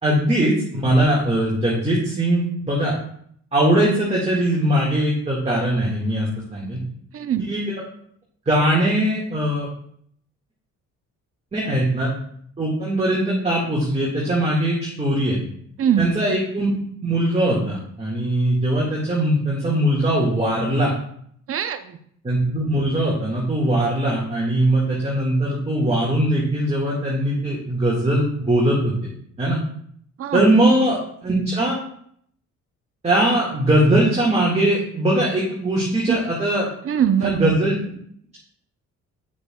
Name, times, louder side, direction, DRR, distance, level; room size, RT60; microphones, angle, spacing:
voice 1, 0.0-2.9 3.5-6.8 7.5-7.7 8.5-9.7 11.5-12.1 12.6-15.4 16.0-16.7 17.0-20.9 22.2-28.9 29.4-29.6 30.3-31.8 33.0-36.7 37.2-37.8, right 1 dB, 20° right, -4 dB, 1.8 m, -20 dB
voice 2, 7.1-7.5 15.8-16.1 21.5-22.0 30.2-30.4 36.1-36.2 36.8-37.5, right 9 dB, 50° right, 10 dB, 0.7 m, -21 dB
8.2 x 6.6 x 2.3 m, 0.65 s
cardioid pair, 90°, 30 cm